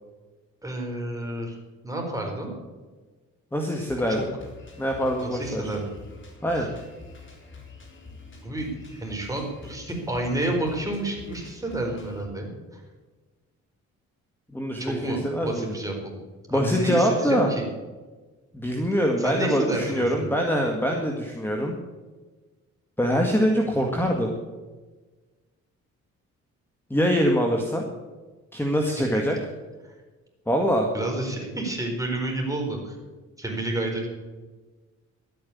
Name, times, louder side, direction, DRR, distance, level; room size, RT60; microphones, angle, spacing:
voice 1, 0.6-1.6 1.8-2.5 4.0-4.2 5.2-5.9 6.6-6.7 8.4-12.8 14.7-16.2 16.5-17.7 19.2-20.3 28.8-29.2 29.8-29.9 30.9-33.0 33.4-34.1, right 1 dB, 10° right, 0 dB, 4.5 m, -30 dB
voice 2, 3.5-4.3 4.8-5.7 6.4-6.7 14.5-15.7 16.5-17.5 18.5-21.8 23.0-24.4 26.9-27.8 28.5-29.4 30.5-30.9, equal, 5° left, 2 dB, 1.9 m, -24 dB
Drum kit, 3.9-12.2, left 4 dB, 40° left, 3.6 m, -46 dB
12.0 x 9.4 x 8.6 m, 1.3 s
cardioid pair, 90°, 30 cm